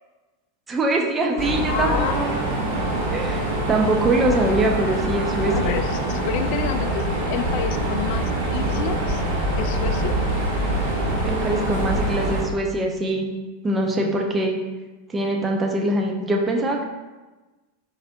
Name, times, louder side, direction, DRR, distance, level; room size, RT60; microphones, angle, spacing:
voice 1, 0.7-2.7 3.1-5.8 11.0-13.3 13.6-14.6 15.1-16.8, right 1 dB, 20° right, 1 dB, 0.6 m, -23 dB
Mechanisms, 1.4-12.4, right 1 dB, 60° right, 1.3 m, -24 dB
voice 2, 1.6-3.0 5.5-9.2 9.6-10.2 15.4-15.5, left 9 dB, 50° left, 9 dB, 0.3 m, -30 dB
4.9 x 4.1 x 2.3 m, 1.2 s
figure-of-eight pair, 90°, 0 cm